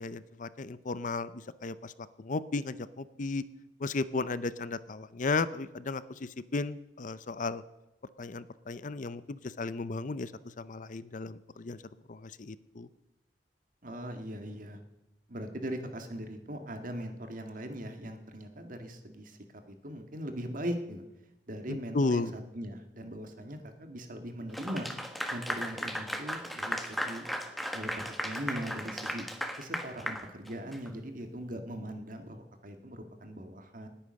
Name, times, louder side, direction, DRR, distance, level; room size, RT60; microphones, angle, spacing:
voice 1, 0.0-1.9 2.2-3.4 3.8-7.6 8.2-10.3 10.6-11.8 12.1-12.9 21.7-22.3, left 3 dB, 45° left, 16 dB, 0.6 m, -34 dB
voice 2, 13.8-14.8 15.3-19.4 19.7-21.0 21.5-22.2 22.5-24.9 25.3-27.2 27.7-29.3 29.5-33.9, equal, 50° right, 6 dB, 1.9 m, -40 dB
Clapping / Applause, 24.5-30.9, equal, ahead, 1.4 m, -36 dB
19.5 x 8.9 x 6.4 m, 0.95 s
head